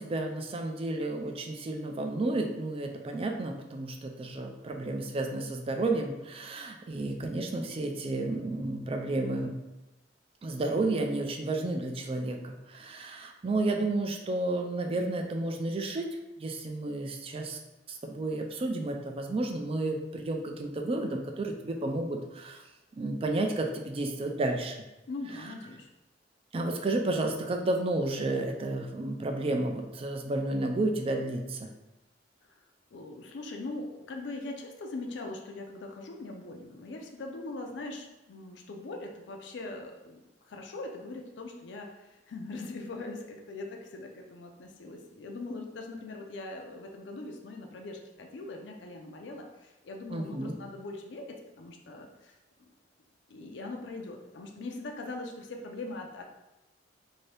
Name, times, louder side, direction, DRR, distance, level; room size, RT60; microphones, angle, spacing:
voice 1, 0.0-9.6 10.4-16.1 16.4-17.6 17.9-22.6 23.0-24.8 26.5-31.7 50.1-50.5, right 2 dB, 30° right, 3 dB, 0.3 m, -31 dB
voice 2, 25.1-25.9 32.4-32.5 32.9-40.2 40.5-52.7 53.3-56.2, left 2 dB, 70° left, 3 dB, 0.4 m, -41 dB
2.7 x 2.6 x 3.2 m, 1.0 s
head